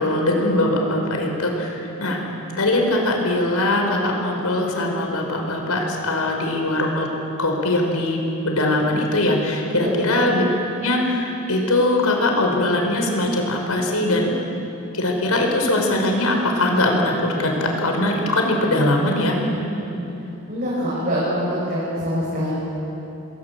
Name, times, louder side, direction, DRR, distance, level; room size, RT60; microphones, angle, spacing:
voice 1, 0.0-2.2 2.5-7.1 7.4-10.4 10.8-14.4 14.9-19.4, left 1 dB, 80° left, 2 dB, 5.4 m, -21 dB
voice 2, 9.6-10.0 19.4-20.0 20.5-22.5, equal, 45° right, -7 dB, 7.4 m, -25 dB
28.5 x 21.5 x 8.6 m, 2.9 s
head